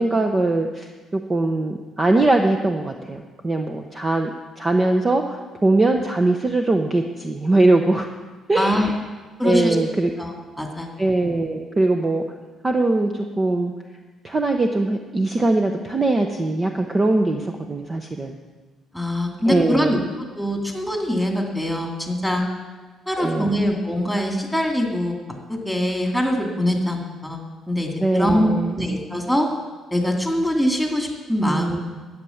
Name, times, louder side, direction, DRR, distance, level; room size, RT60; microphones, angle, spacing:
voice 1, 0.0-8.1 8.5-9.0 9.4-10.1 11.0-12.2 12.6-13.7 14.2-18.4 19.5-20.0 23.2-23.6 28.0-28.8 31.4-31.8, right 2 dB, 25° right, 4 dB, 0.9 m, -21 dB
voice 2, 8.6-8.9 9.4-9.8 10.2-10.9 18.9-20.0 20.3-22.4 23.1-25.1 25.5-29.5 29.9-31.8, equal, ahead, 1 dB, 2.5 m, -23 dB
12.0 x 9.4 x 7.1 m, 1.3 s
cardioid pair, 115°, 0 cm